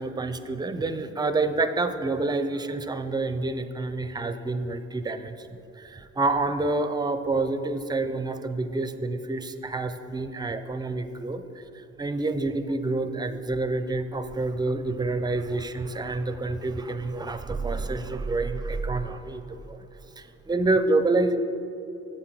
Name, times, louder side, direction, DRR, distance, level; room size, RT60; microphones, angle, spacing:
voice 1, 0.0-5.5 5.8-19.8 20.2-21.4, right 2 dB, 15° right, 10 dB, 0.4 m, -28 dB
7.6 x 7.5 x 4.6 m, 2.8 s
cardioid pair, 90°, 30 cm